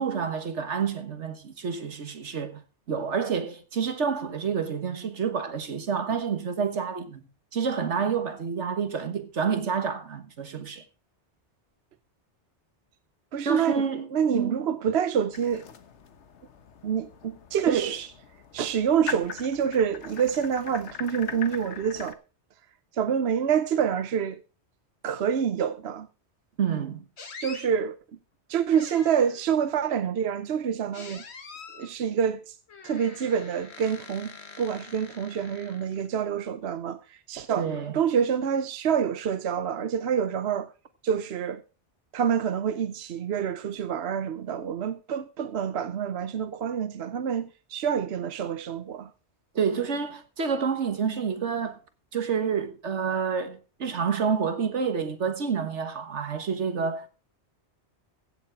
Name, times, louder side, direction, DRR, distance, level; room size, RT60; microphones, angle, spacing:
voice 1, 0.0-2.6 2.9-10.8 13.4-14.1 14.3-14.6 17.7-18.0 26.6-27.0 37.6-37.9 49.5-51.8 52.1-57.1, right 6 dB, 85° right, 1.7 m, -28 dB
voice 2, 13.3-13.8 14.1-15.6 16.8-18.1 18.5-22.2 22.9-24.4 25.0-26.1 27.4-28.0 28.5-31.2 31.7-32.5 32.8-34.3 34.6-37.7 37.9-40.7 41.0-41.6 42.1-49.1, right 8 dB, 70° right, 1.0 m, -27 dB
sound 1, 15.3-22.1, left 6 dB, 90° left, 1.3 m, -41 dB
Door squeak, 27.2-27.7 28.7-29.5 30.9-31.9 32.7-36.1, left 5 dB, 70° left, 1.7 m, -45 dB
15.5 x 7.3 x 4.5 m
omnidirectional pair, 1.1 m